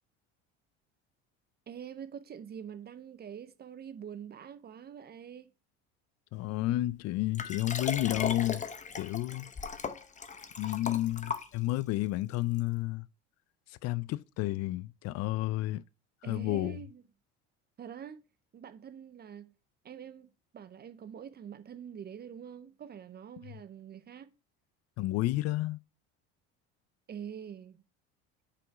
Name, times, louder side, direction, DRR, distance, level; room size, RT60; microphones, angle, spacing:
voice 1, 1.7-5.5 16.2-17.0 17.8-18.2 18.5-19.5 19.8-20.3 20.5-24.3 27.1-27.8, right 8 dB, 30° right, 0.6 m, -45 dB
voice 2, 6.3-8.6 9.0-9.5 10.6-13.1 13.8-15.8 16.3-16.8 25.0-25.8, left 16 dB, 50° left, 0.5 m, -31 dB
Liquid, 7.4-11.9 12.6-12.7, left 6 dB, 25° left, 0.7 m, -37 dB
5.7 x 5.0 x 4.8 m
supercardioid pair, 90°, 32 cm